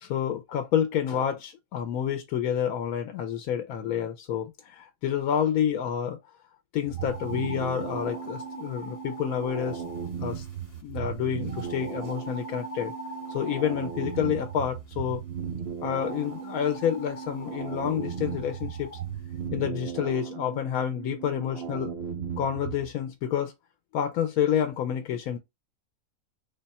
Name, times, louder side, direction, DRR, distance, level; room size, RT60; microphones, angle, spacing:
voice 1, 0.0-6.2 6.7-9.8 10.2-10.5 10.8-12.9 13.3-15.2 15.8-18.9 19.5-21.9 22.4-23.5 23.9-25.4, left 9 dB, 90° left, 1.1 m, -29 dB
sound 1, 6.8-22.9, right 7 dB, 65° right, 0.6 m, -36 dB
sound 2, 6.9-10.8 11.5-14.8 15.8-19.1, right 1 dB, 15° left, 1.1 m, -44 dB
3.5 x 2.2 x 4.0 m
omnidirectional pair, 1.5 m